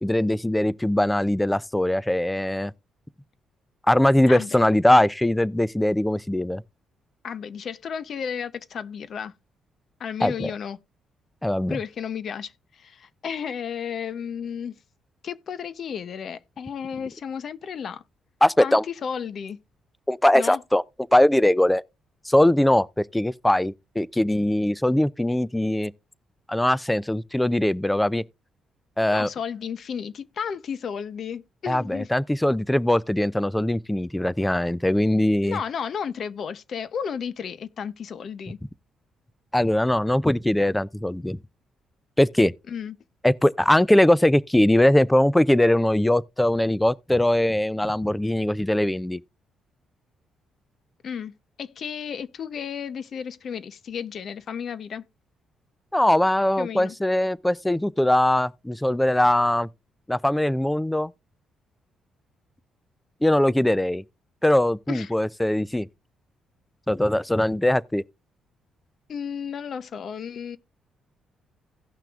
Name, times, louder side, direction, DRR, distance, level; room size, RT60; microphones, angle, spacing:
voice 1, 0.0-2.7 3.9-6.6 10.2-10.5 11.4-11.8 18.4-18.8 20.1-20.8 21.1-21.8 22.3-25.9 26.5-28.2 29.0-29.3 31.7-35.6 39.5-41.4 42.2-42.5 43.2-49.2 55.9-59.7 60.1-61.1 63.2-64.0 64.4-65.9 66.9-68.0, left 1 dB, 5° left, 0.4 m, -21 dB
voice 2, 4.3-4.6 7.2-9.3 10.0-10.8 11.7-14.7 15.2-18.0 18.6-19.6 20.3-20.6 29.1-32.1 35.4-38.6 42.7-43.0 51.0-51.3 51.6-55.0 56.6-56.9 64.9-65.1 69.1-70.6, left 7 dB, 55° left, 0.6 m, -33 dB
16.5 x 5.9 x 2.4 m
cardioid pair, 90°, 0 cm